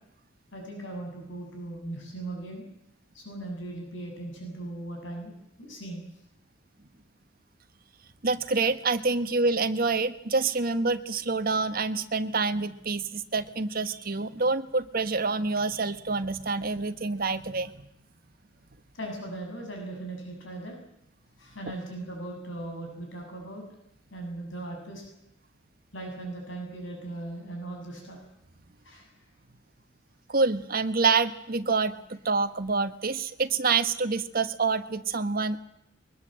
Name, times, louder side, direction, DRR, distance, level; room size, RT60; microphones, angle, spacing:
voice 1, 0.5-2.6 3.1-6.0 18.9-20.8 21.4-23.6 24.1-25.0 25.9-28.2 28.8-29.1, right 2 dB, 80° left, 2 dB, 7.5 m, -38 dB
voice 2, 8.2-17.8 30.3-35.6, right 4 dB, 50° right, 9 dB, 1.4 m, -27 dB
23.0 x 21.0 x 7.7 m, 0.80 s
head